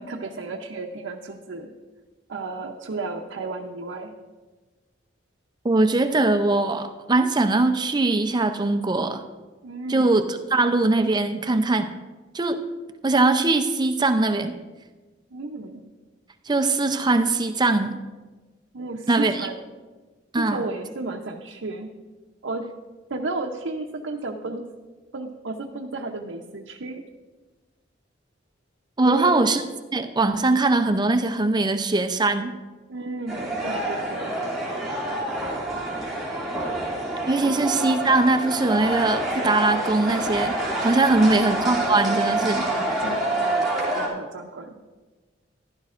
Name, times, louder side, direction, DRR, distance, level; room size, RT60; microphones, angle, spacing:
voice 1, 0.0-1.7 2.3-4.1 9.6-10.2 15.3-15.8 18.7-19.6 20.4-21.9 22.4-22.7 23.1-24.6 25.1-27.0 29.0-29.4 32.9-34.3 37.4-37.6 41.1-41.9 42.6-44.7, right 3 dB, 70° right, 1 dB, 0.7 m, -33 dB
voice 2, 5.6-9.2 9.9-11.9 12.3-12.6 13.0-14.5 16.5-18.0 19.1-19.5 20.3-20.6 29.0-29.6 29.9-32.5 37.3-42.6, right 2 dB, 20° right, 8 dB, 0.5 m, -21 dB
sound 1, 33.3-44.1, right 1 dB, ahead, 2.7 m, -27 dB
14.5 x 11.5 x 2.5 m, 1.3 s
head